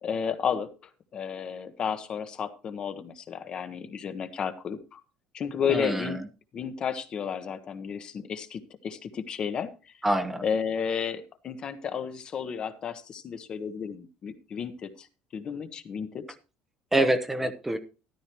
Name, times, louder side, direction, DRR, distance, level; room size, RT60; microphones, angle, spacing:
voice 1, 0.0-0.7 1.1-5.0 5.3-6.2 6.5-9.9 10.4-15.1 15.3-16.2, left 7 dB, 35° left, 10 dB, 1.1 m, -32 dB
voice 2, 5.7-6.1 10.0-10.4 16.9-17.8, right 1 dB, 10° right, 8 dB, 0.9 m, -25 dB
13.5 x 11.5 x 3.0 m, 0.32 s
cardioid pair, 155°, 3 cm